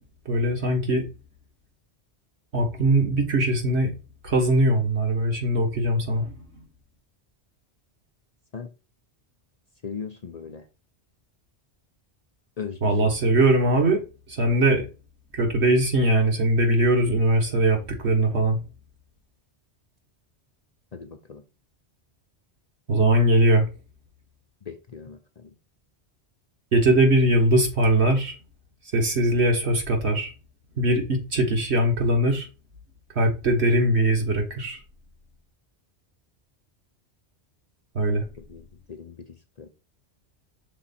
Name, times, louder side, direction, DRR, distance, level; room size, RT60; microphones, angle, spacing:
voice 1, 0.3-1.1 2.5-3.9 4.2-6.4 12.8-14.0 14.3-14.9 15.3-18.6 22.9-23.7 26.7-28.3 28.9-30.3 30.8-32.5 33.2-34.8 38.0-38.2, right 1 dB, 70° right, 1.9 m, -21 dB
voice 2, 9.8-10.7 12.6-13.4 20.9-21.4 24.6-25.5 38.4-39.7, left 6 dB, 40° left, 0.7 m, -39 dB
6.1 x 4.0 x 4.2 m
omnidirectional pair, 1.2 m